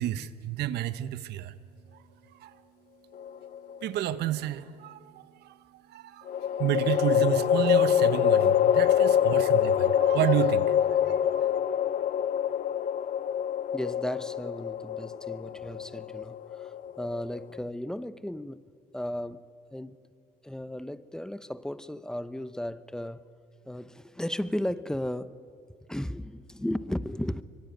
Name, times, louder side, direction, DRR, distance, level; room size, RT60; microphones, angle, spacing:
voice 1, 0.0-1.5 2.3-2.6 3.8-6.3 6.6-11.6, right 12 dB, 75° right, 1.2 m, -31 dB
sound 1, 3.2-4.0 6.3-17.6, left 9 dB, 50° left, 0.8 m, -25 dB
voice 2, 13.7-19.4 19.7-20.0 20.4-23.3 23.6-25.4 25.9-27.4, left 1 dB, 5° left, 0.9 m, -35 dB
24.5 x 24.0 x 9.2 m
cardioid pair, 110°, 17 cm